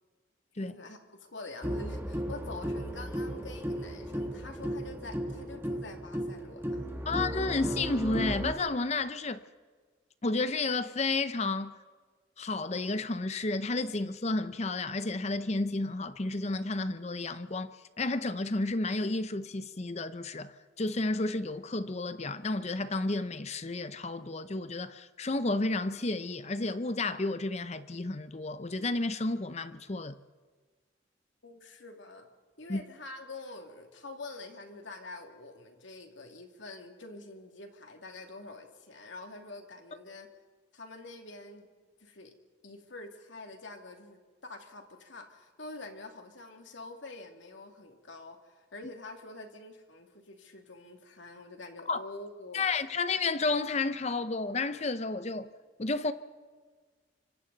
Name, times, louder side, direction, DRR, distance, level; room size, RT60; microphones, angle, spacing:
voice 1, 0.6-6.8 31.4-32.3 32.6-40.3 40.7-41.7 42.0-42.3 42.6-52.6, left 2 dB, 75° left, 2.5 m, -46 dB
sound 1, 1.6-8.5, equal, 10° right, 1.5 m, -35 dB
voice 2, 7.1-9.4 10.2-11.8 12.4-30.2 32.7-32.8 51.9-52.0 52.5-55.5 55.8-56.1, left 3 dB, 35° left, 0.7 m, -31 dB
25.5 x 25.5 x 4.1 m
head